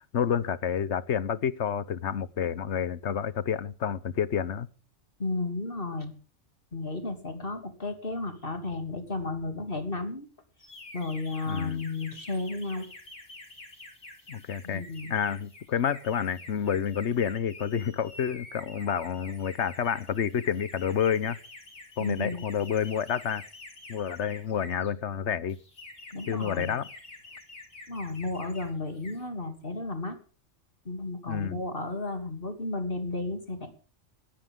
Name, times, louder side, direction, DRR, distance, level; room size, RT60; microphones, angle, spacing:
voice 1, 0.1-4.7 11.5-11.8 14.3-14.8 15.1-21.4 22.0-23.4 23.9-25.6 26.3-26.9 31.3-31.6, left 8 dB, 70° left, 1.2 m, -29 dB
voice 2, 5.2-6.1 6.7-10.3 10.9-12.9 14.6-15.1 22.0-22.4 26.1-26.8 27.9-30.2 30.8-33.7, left 3 dB, 50° left, 3.2 m, -33 dB
sound 1, 10.6-24.9 25.5-28.7 29.0-29.3, left 2 dB, 90° left, 3.9 m, -48 dB
19.0 x 15.0 x 3.8 m
omnidirectional pair, 1.2 m